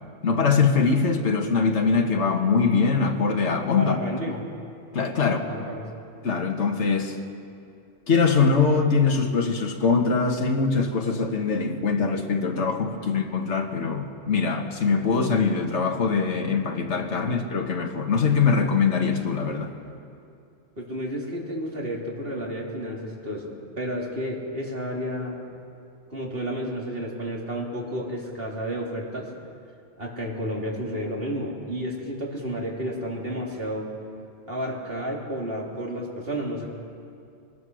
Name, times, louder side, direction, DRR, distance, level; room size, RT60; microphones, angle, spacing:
voice 1, 0.2-4.0 4.9-5.4 6.2-7.2 8.1-19.7, left 5 dB, 65° left, 3 dB, 1.8 m, -22 dB
voice 2, 3.8-4.4 5.3-5.8 20.8-25.4 26.1-29.3 30.0-33.9 34.5-36.7, equal, 50° right, -2 dB, 3.5 m, -31 dB
24.5 x 20.0 x 6.3 m, 2.5 s
omnidirectional pair, 1.3 m